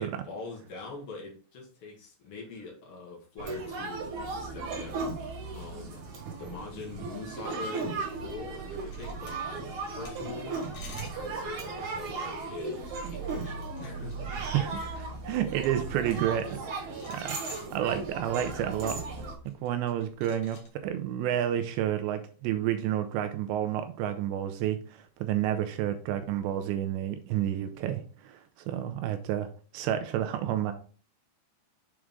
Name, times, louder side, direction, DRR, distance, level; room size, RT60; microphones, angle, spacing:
voice 1, 0.0-4.1 4.4-6.0 6.3-10.6 10.9-14.5, left 4 dB, 70° left, -1 dB, 1.3 m, -43 dB
sound 1, 3.4-19.4, right 3 dB, 55° right, 2.4 m, -36 dB
sound 2, 8.9-20.7, left 4 dB, 90° left, 1.4 m, -54 dB
voice 2, 14.4-17.4 17.7-19.0 19.6-29.5 29.7-30.7, right 11 dB, 85° right, 8 dB, 2.7 m, -30 dB
7.4 x 4.8 x 3.6 m, 0.40 s
omnidirectional pair, 5.3 m